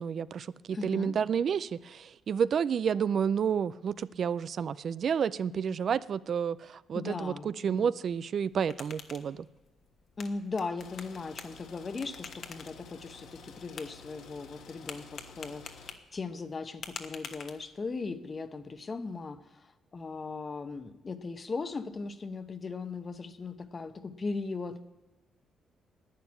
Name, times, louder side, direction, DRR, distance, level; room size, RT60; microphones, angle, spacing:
voice 1, 0.0-9.5, right 7 dB, 50° right, 18 dB, 0.4 m, -30 dB
voice 2, 0.7-1.2 6.9-7.9 10.2-24.8, left 4 dB, 30° left, 11 dB, 0.9 m, -38 dB
sound 1, 8.3-18.0, left 6 dB, 50° left, 1.2 m, -48 dB
sound 2, 10.8-15.9, left 5 dB, 70° left, 1.6 m, -51 dB
11.5 x 9.1 x 9.7 m, 1.1 s
cardioid pair, 135°, 0 cm